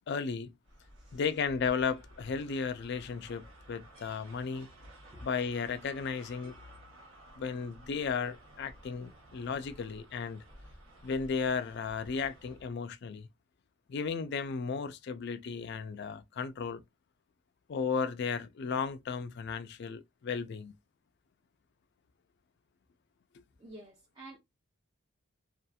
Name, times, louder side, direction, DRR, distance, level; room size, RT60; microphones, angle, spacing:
voice 1, 0.1-0.5 1.1-4.7 5.2-6.6 7.4-10.4 11.0-13.3 13.9-16.8 17.7-20.7, left 5 dB, 55° left, 0.3 m, -34 dB
sound 1, 0.6-12.7, right 1 dB, 80° right, 1.0 m, -55 dB
voice 2, 23.6-24.4, right 1 dB, 20° right, 0.6 m, -49 dB
2.7 x 2.4 x 2.3 m
head